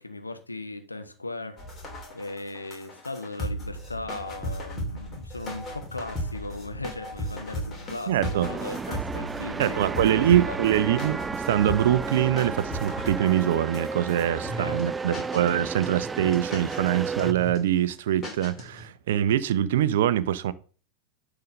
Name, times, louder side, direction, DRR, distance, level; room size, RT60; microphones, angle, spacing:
voice 1, 0.0-1.6 2.1-10.6 14.3-14.8, left 2 dB, 80° left, 1.3 m, -37 dB
sound 1, 1.6-14.8 15.1-15.5 15.8-16.9 17.2-17.6 17.9-18.0 18.2-18.9, equal, 20° left, 3.1 m, -36 dB
voice 2, 8.1-8.5 9.6-20.5, right 11 dB, 55° right, 0.7 m, -24 dB
sound 2, 8.4-17.3, right 4 dB, 15° right, 0.3 m, -33 dB
10.5 x 3.9 x 6.5 m
figure-of-eight pair, 90°, 0 cm